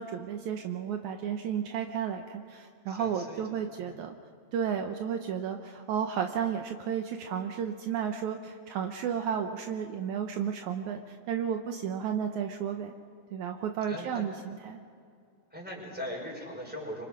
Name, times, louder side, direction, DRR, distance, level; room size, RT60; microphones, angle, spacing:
voice 1, 0.0-4.2 4.5-12.9 13.3-14.8, right 8 dB, 75° right, 5 dB, 2.2 m, -33 dB
voice 2, 2.9-3.4 3.9-4.0 13.9-14.3 15.5-17.1, equal, 5° right, -1 dB, 4.9 m, -40 dB
25.5 x 25.5 x 5.1 m, 2.3 s
omnidirectional pair, 3.7 m